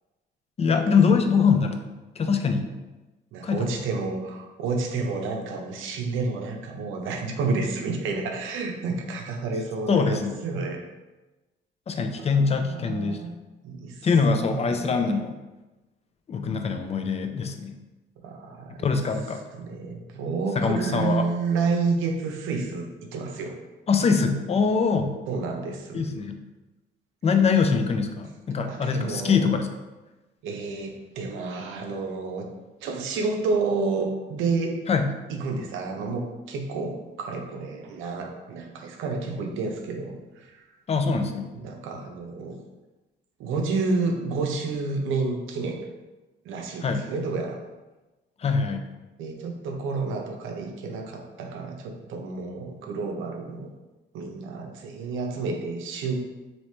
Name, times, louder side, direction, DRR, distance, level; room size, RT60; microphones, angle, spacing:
voice 1, 0.6-1.8 2.2-2.7 3.4-3.7 9.9-10.4 11.9-13.2 14.0-15.4 16.3-17.7 18.7-19.4 20.6-21.3 23.9-25.1 25.9-26.4 27.2-29.7 34.9-35.1 40.9-41.5 46.8-47.0 48.4-48.8, left 5 dB, 30° left, 6 dB, 0.4 m, -23 dB
voice 2, 3.3-10.8 12.3-12.4 12.7-13.3 13.6-14.1 14.4-15.1 18.2-18.9 19.5-23.5 25.3-26.0 28.7-29.5 30.4-32.5 32.8-34.8 35.3-40.6 41.6-42.5 43.4-45.9 46.4-47.6 49.2-53.7 54.1-56.2, right 4 dB, 85° right, 2 dB, 0.5 m, -30 dB
2.9 x 2.7 x 3.2 m, 1.1 s
cardioid pair, 90°, 20 cm